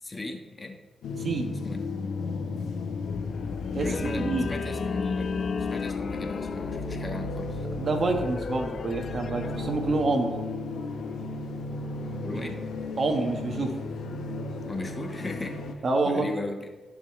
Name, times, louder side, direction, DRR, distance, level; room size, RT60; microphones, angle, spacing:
voice 1, 0.0-0.8 1.6-1.8 3.8-4.2 4.5-7.7 12.2-12.5 14.7-16.7, left 2 dB, 30° left, 3 dB, 1.5 m, -37 dB
sound 1, 1.0-15.7, left 3 dB, 80° left, 1.2 m, -33 dB
sound 2, 3.1-10.1, left 6 dB, 55° left, 0.4 m, -38 dB
voice 2, 3.7-4.5 7.8-10.3 13.0-13.7 15.8-16.3, right 3 dB, 55° right, 3 dB, 1.5 m, -27 dB
15.0 x 5.2 x 3.3 m, 1.2 s
cardioid pair, 60°, 0 cm